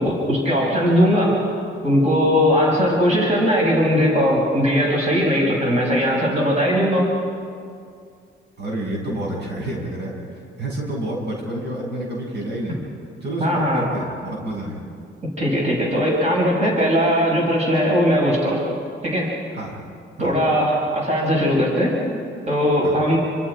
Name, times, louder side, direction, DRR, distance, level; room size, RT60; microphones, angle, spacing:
voice 1, 0.0-1.4 1.8-7.1 13.4-13.9 15.4-18.6 19.0-19.3 20.2-22.0 22.5-23.2, equal, 35° right, -2 dB, 6.6 m, -19 dB
voice 2, 8.6-12.8 13.2-14.8 19.5-19.7 20.2-20.3 22.8-22.9, right 1 dB, 60° right, -2 dB, 7.7 m, -29 dB
29.0 x 25.5 x 5.1 m, 2.3 s
cardioid pair, 90°, 20 cm